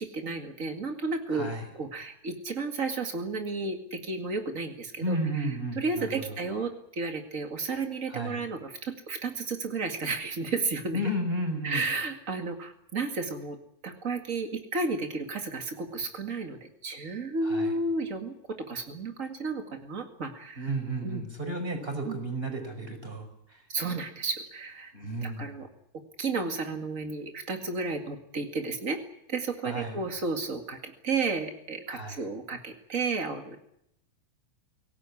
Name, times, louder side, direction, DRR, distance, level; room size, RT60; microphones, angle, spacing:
voice 1, 0.0-5.5 5.7-11.0 11.6-13.6 13.8-20.7 21.0-21.2 22.0-22.2 23.7-24.9 25.2-25.7 26.2-29.0 29.3-33.6, right 3 dB, 65° right, 5 dB, 0.8 m, -32 dB
voice 2, 1.3-1.7 5.0-6.4 8.1-8.4 10.9-11.8 17.4-17.7 20.5-23.6 24.9-25.5 29.6-30.0 31.9-32.2, right 1 dB, 10° right, 6 dB, 5.2 m, -33 dB
24.5 x 18.0 x 9.8 m, 0.77 s
omnidirectional pair, 5.0 m